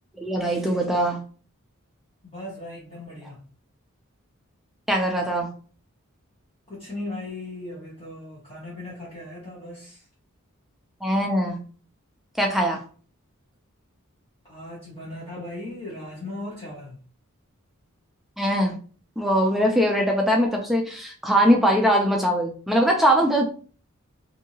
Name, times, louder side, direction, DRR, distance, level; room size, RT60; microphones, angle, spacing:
voice 1, 0.2-1.2 4.9-5.5 11.0-11.6 12.4-12.8 18.4-18.8 19.2-23.4, equal, ahead, 0 dB, 0.3 m, -21 dB
voice 2, 2.2-3.4 6.7-10.0 14.4-17.0, left 2 dB, 25° left, -6 dB, 1.0 m, -37 dB
2.7 x 2.7 x 2.7 m, 0.41 s
head